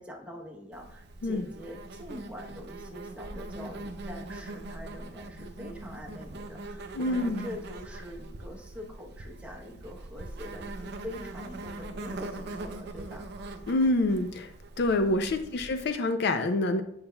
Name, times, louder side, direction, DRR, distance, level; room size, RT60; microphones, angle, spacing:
voice 1, 0.0-13.3 15.2-15.5, left 1 dB, 5° right, 0 dB, 0.8 m, -44 dB
Insect, 0.7-15.9, right 2 dB, 55° right, 0.5 m, -42 dB
voice 2, 6.9-7.5 13.7-14.5 14.8-16.8, left 2 dB, 55° left, 8 dB, 0.4 m, -26 dB
8.6 x 5.6 x 2.2 m, 0.75 s
head